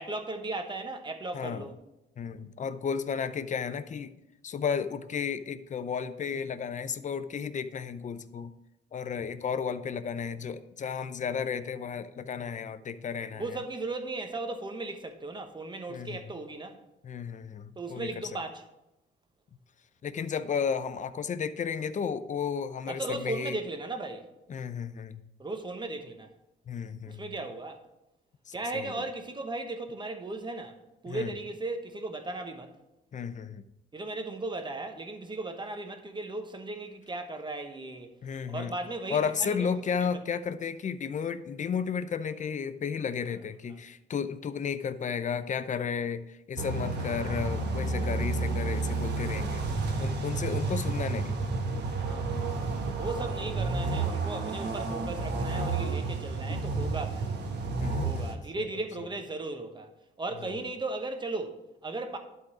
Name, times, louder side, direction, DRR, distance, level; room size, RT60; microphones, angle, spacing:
voice 1, 0.0-1.7 13.3-16.8 17.8-18.6 22.9-24.3 25.4-26.3 27.1-27.8 28.5-30.8 31.0-32.8 33.9-38.2 38.5-39.7 40.0-40.1 43.7-43.8 50.0-50.2 52.0-52.5 53.0-57.4 58.0-59.9 60.2-62.2, right 2 dB, 25° right, 1.1 m, -36 dB
voice 2, 2.2-4.1 4.4-8.5 8.9-13.4 15.9-16.2 17.0-18.1 20.0-23.6 24.5-25.2 26.7-27.2 28.5-29.0 31.1-31.3 33.1-33.6 38.2-38.7 39.1-49.6 50.0-51.4 56.5-56.6 57.8-58.7 59.0-59.1 60.4-60.5, left 6 dB, 40° left, 0.6 m, -33 dB
sound 1, 46.6-58.3, right 3 dB, 60° right, 1.2 m, -31 dB
11.5 x 3.9 x 4.8 m
cardioid pair, 90°, 20 cm